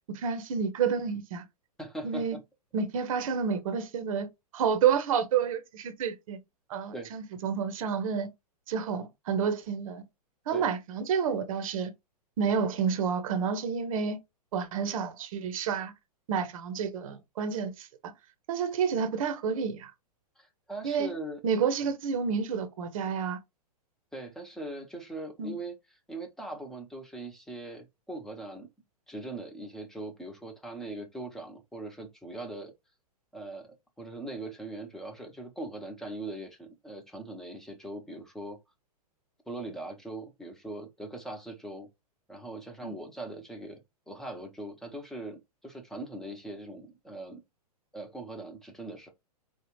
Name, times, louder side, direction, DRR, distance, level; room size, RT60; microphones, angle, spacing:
voice 1, 0.1-1.4 2.0-2.4 2.7-4.3 4.5-6.4 6.7-8.3 8.7-10.0 10.5-11.9 12.4-14.2 14.5-15.9 16.3-18.1 18.5-19.9 20.8-21.1 21.4-23.4 25.4-25.6 42.8-42.9, right 6 dB, 55° right, 0.8 m, -29 dB
voice 2, 1.8-2.4 6.9-7.1 10.5-10.7 20.4-21.4 24.1-25.8 26.1-28.7 29.1-32.7 33.3-38.6 39.5-41.9 42.3-43.8 44.1-47.4 47.9-49.1, right 2 dB, ahead, 0.9 m, -41 dB
4.9 x 2.4 x 3.1 m
figure-of-eight pair, 110°, 20 cm